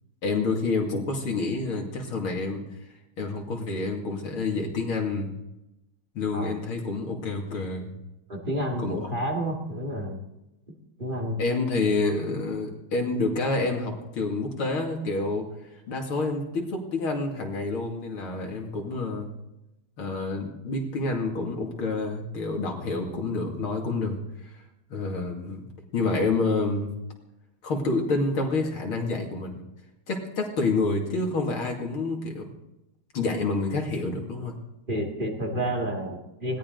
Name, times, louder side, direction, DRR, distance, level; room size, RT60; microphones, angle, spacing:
voice 1, 0.2-2.6 3.2-5.3 6.1-7.9 8.8-9.0 11.4-15.5 15.9-19.3 20.0-24.2 24.9-25.7 25.9-26.9 27.6-29.6 30.1-32.5 33.1-34.6, left 3 dB, 80° left, 1 dB, 3.3 m, -28 dB
voice 2, 8.3-10.2 10.7-11.4 34.9-36.6, equal, 25° right, 2 dB, 2.4 m, -30 dB
20.5 x 17.0 x 4.0 m, 0.92 s
omnidirectional pair, 2.3 m